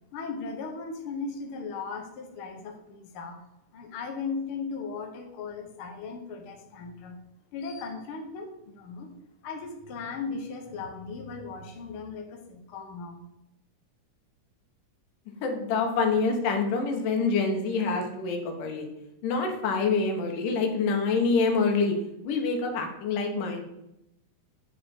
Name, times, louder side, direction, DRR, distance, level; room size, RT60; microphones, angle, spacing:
voice 1, 0.1-3.4 3.7-7.2 7.5-9.1 9.4-13.3, left 4 dB, 65° left, 3 dB, 1.3 m, -37 dB
voice 2, 15.4-18.9 19.2-21.9 22.2-23.7, left 4 dB, 85° left, 3 dB, 2.8 m, -26 dB
9.8 x 5.1 x 4.4 m, 0.85 s
omnidirectional pair, 3.7 m